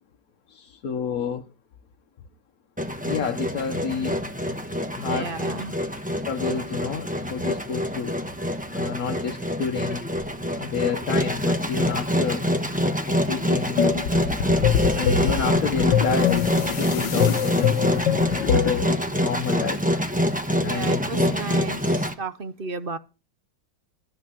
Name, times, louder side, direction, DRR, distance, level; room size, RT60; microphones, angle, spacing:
voice 1, 0.5-1.5 3.0-4.2 4.9-5.3 6.2-8.2 8.7-10.1 10.6-12.5 13.1-13.8 14.9-18.1 18.4-19.9 20.6-21.3, left 6 dB, 55° left, 1.3 m, -29 dB
Engine, 2.8-22.1, equal, 5° right, 0.9 m, -26 dB
voice 2, 5.0-5.7 20.6-23.0, right 4 dB, 45° right, 0.7 m, -33 dB
sound 1, 13.8-18.9, left 8 dB, 75° left, 1.5 m, -23 dB
13.5 x 6.1 x 7.7 m
omnidirectional pair, 2.0 m